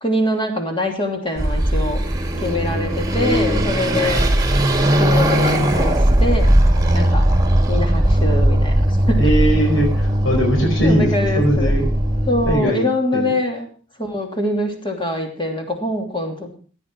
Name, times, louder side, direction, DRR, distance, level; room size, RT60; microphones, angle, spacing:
voice 1, 0.0-2.0 2.4-4.3 5.0-6.5 6.9-7.3 7.7-9.2 10.8-11.7 12.3-13.7 14.0-16.6, left 1 dB, 25° left, 3 dB, 2.9 m, -23 dB
Car passing by / Accelerating revving vroom, 1.4-12.6, right 1 dB, 20° right, 1.9 m, -18 dB
voice 2, 9.2-11.1 11.4-11.8 12.5-12.9 13.1-13.3, equal, 85° left, 0 dB, 4.9 m, -19 dB
15.5 x 9.7 x 4.6 m, 0.40 s
head